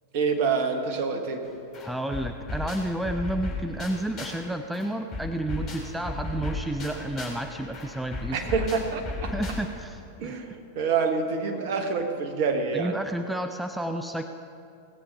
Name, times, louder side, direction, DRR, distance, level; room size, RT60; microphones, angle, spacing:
voice 1, 0.1-1.4 8.3-9.3 10.2-12.9, right 5 dB, 50° right, 5 dB, 1.4 m, -27 dB
sound 1, 1.4-1.5 1.7-4.5 4.7-9.9, left 2 dB, 30° left, 3.4 m, -35 dB
voice 2, 1.8-8.5 9.3-10.4 12.7-14.2, right 1 dB, 5° right, 6 dB, 0.5 m, -31 dB
17.5 x 8.1 x 5.6 m, 2.5 s
figure-of-eight pair, 90°, 0 cm